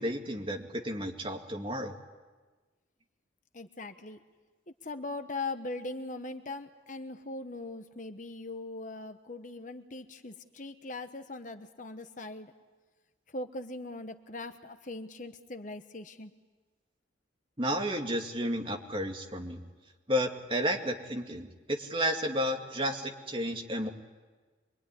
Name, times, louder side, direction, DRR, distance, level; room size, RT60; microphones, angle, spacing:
voice 1, 0.0-2.0 17.6-19.6 20.1-21.5 21.8-23.9, equal, 30° right, 2 dB, 2.2 m, -32 dB
voice 2, 3.5-4.2 4.7-12.5 13.3-16.3, left 2 dB, 40° left, 8 dB, 1.1 m, -40 dB
25.5 x 23.0 x 9.8 m, 1.3 s
head